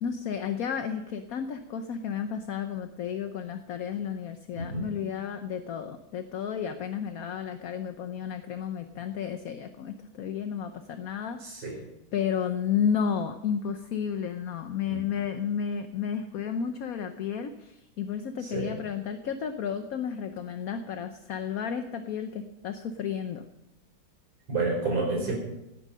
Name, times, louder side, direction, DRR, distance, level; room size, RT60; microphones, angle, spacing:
voice 1, 0.0-11.8 12.1-23.5, left 7 dB, 60° left, 8 dB, 1.1 m, -32 dB
voice 2, 4.5-4.9 11.4-11.8 14.9-15.0 18.5-18.7 24.5-25.3, right 3 dB, 90° right, -3 dB, 5.1 m, -29 dB
18.0 x 9.1 x 5.5 m, 0.91 s
omnidirectional pair, 2.0 m